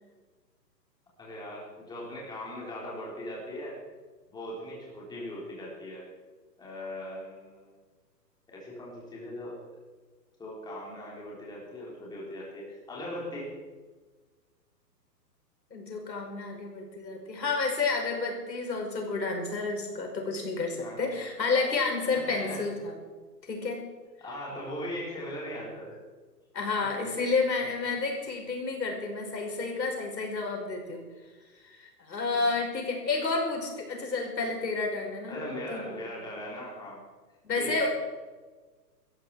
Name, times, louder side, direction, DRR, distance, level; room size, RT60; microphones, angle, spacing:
voice 1, 1.2-3.8 4.3-6.1 6.6-7.7 8.5-9.6 10.4-13.6 20.8-21.0 22.1-22.7 24.2-26.0 26.8-27.2 32.3-32.6 35.3-37.0 37.6-37.9, left 1 dB, 10° left, -4 dB, 4.0 m, -39 dB
voice 2, 15.7-22.9 23.5-23.8 26.5-31.0 31.6-35.4 35.7-36.0 37.4-37.9, left 3 dB, 90° left, 1 dB, 5.4 m, -30 dB
17.0 x 14.0 x 4.9 m, 1.4 s
hypercardioid pair, 150°, 50 cm